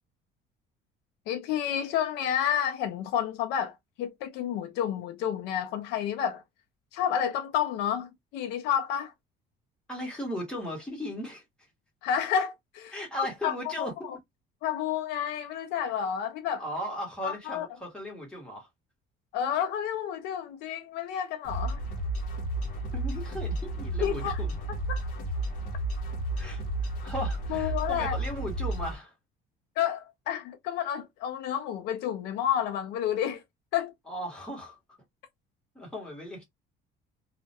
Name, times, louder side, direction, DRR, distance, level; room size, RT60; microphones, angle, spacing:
voice 1, 1.3-6.4 6.9-9.1 12.0-14.2 14.6-16.6 17.2-17.7 19.3-21.8 24.0-24.4 24.7-25.0 27.5-28.2 29.8-33.4 33.7-33.9, left 9 dB, 70° left, 0.4 m, -30 dB
voice 2, 9.9-11.4 12.9-13.9 16.6-18.7 22.9-24.5 26.4-29.1 34.1-34.8 35.7-36.4, equal, 5° left, 1.0 m, -37 dB
sound 1, 21.4-29.0, right 1 dB, 50° left, 0.7 m, -32 dB
2.2 x 2.1 x 2.6 m
cardioid pair, 175°, 17 cm